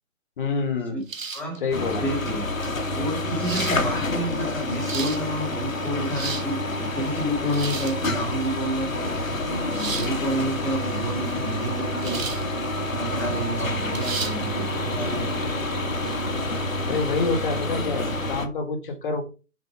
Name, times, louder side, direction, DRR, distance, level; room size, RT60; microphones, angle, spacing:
voice 1, 0.4-1.0 1.6-2.0 16.6-19.2, left 4 dB, 35° left, 1.9 m, -27 dB
sound 1, 1.1-1.6 2.6-2.7 3.4-3.8 4.6-5.2 5.9-6.5 7.5-8.0 9.7-10.1 12.0-12.5 12.9-13.0 13.9-14.4, right 5 dB, 65° right, 1.5 m, -32 dB
sound 2, 1.7-18.5, left 2 dB, 70° left, 1.6 m, -28 dB
voice 2, 1.9-2.6 2.9-9.2 9.7-12.3 12.8-15.4, right 1 dB, 5° left, 1.8 m, -30 dB
Bowed string instrument, 9.4-16.8, right 6 dB, 20° right, 1.1 m, -38 dB
7.2 x 5.1 x 4.7 m
figure-of-eight pair, 135°, 42 cm